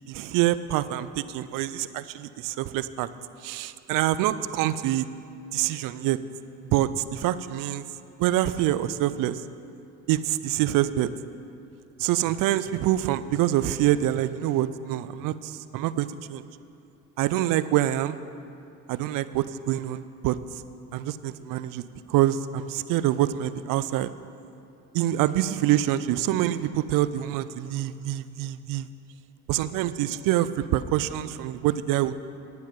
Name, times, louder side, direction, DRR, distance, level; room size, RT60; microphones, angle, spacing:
voice 1, 0.1-3.1 3.4-5.1 5.5-6.2 6.7-7.8 8.2-9.4 10.1-11.1 12.0-16.4 17.2-18.2 18.9-20.4 20.9-21.8 22.1-24.1 24.9-28.9 29.5-32.2, right 13 dB, 65° right, 15 dB, 0.5 m, -26 dB
11.0 x 9.4 x 5.2 m, 2.6 s
supercardioid pair, 70°, 36 cm